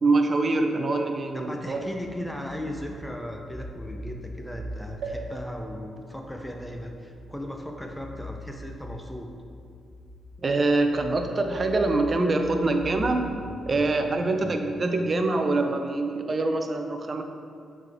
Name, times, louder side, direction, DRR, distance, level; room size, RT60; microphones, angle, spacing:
voice 1, 0.0-1.9 10.4-13.3 13.7-17.2, right 2 dB, 45° right, 5 dB, 0.6 m, -24 dB
voice 2, 1.3-9.3, equal, 5° left, 2 dB, 0.6 m, -37 dB
sound 1, 1.7-15.3, equal, 35° left, 0.9 m, -43 dB
sound 2, 5.0-8.7 9.3-9.4 9.6-9.7, right 4 dB, 80° right, 0.8 m, -42 dB
7.2 x 3.8 x 3.5 m, 2.3 s
supercardioid pair, 60°, 0 cm